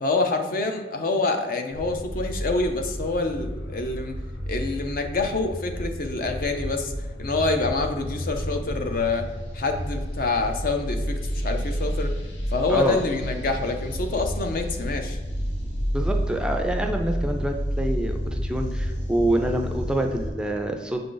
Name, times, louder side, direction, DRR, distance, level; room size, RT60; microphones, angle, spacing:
voice 1, 0.0-4.1 4.5-6.9 7.2-9.3 9.5-11.2 11.4-12.1 12.5-15.2, left 3 dB, 55° left, 5 dB, 0.6 m, -26 dB
sound 1, 1.7-20.3, equal, 80° left, 0.9 m, -30 dB
voice 2, 12.7-13.0 15.9-21.0, right 1 dB, 5° right, 3 dB, 0.4 m, -26 dB
6.6 x 3.8 x 3.8 m, 1.2 s
head